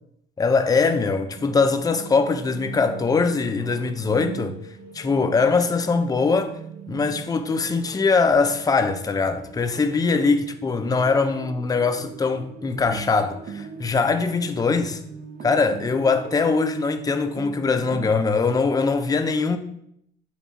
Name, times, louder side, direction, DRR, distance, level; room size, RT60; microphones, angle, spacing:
voice 1, 0.4-4.6 4.9-6.5 6.9-15.0 15.4-19.6, left 4 dB, 20° left, 0.4 m, -22 dB
The wait for revolution (music), 1.4-18.2, right 6 dB, 55° right, 0.6 m, -40 dB
5.5 x 2.3 x 4.0 m
cardioid pair, 90°, 20 cm